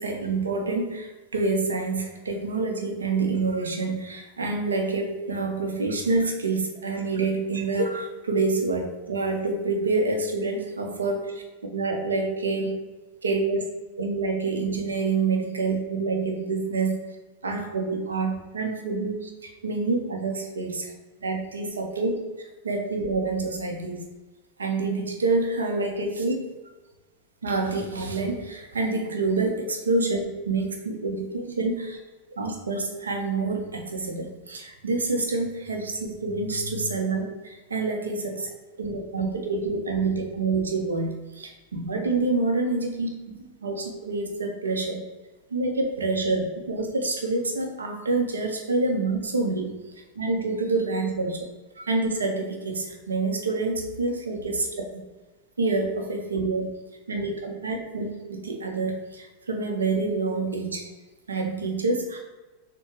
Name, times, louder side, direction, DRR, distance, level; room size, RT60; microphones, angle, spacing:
voice 1, 0.0-11.4 11.7-12.8 13.2-13.6 14.0-17.0 17.4-19.3 19.6-20.7 21.2-22.2 22.6-24.0 24.6-26.4 27.4-32.0 32.4-38.5 38.8-43.1 43.4-45.0 45.5-49.7 50.2-51.5 51.8-54.5 55.6-56.7 57.1-60.9 61.3-62.2, right 3 dB, 70° right, 2 dB, 0.7 m, -27 dB
6.3 x 2.2 x 3.2 m, 1.2 s
figure-of-eight pair, 90°, 0 cm